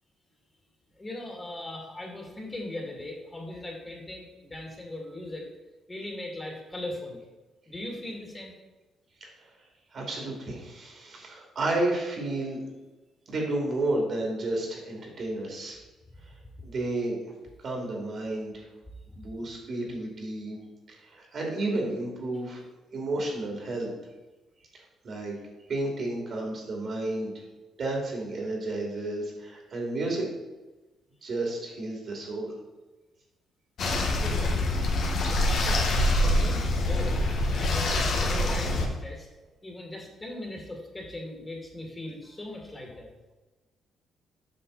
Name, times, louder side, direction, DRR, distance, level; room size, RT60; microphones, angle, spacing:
voice 1, 0.9-5.5 5.9-7.2 7.7-8.5 16.1-16.2 34.2-34.7 35.3-39.3 39.6-43.1, left 1 dB, 20° left, 0 dB, 2.1 m, -39 dB
voice 2, 9.9-12.6 13.3-15.8 16.6-17.2 17.6-18.6 19.1-20.6 20.9-22.6 22.9-23.9 25.0-25.3 25.7-27.4 27.8-30.3 31.2-32.5, right 2 dB, 55° right, 0 dB, 2.7 m, -31 dB
sound 1, 33.8-38.9, left 1 dB, 65° left, 1.4 m, -25 dB
8.0 x 5.8 x 4.0 m, 1.1 s
cardioid pair, 90°, 0 cm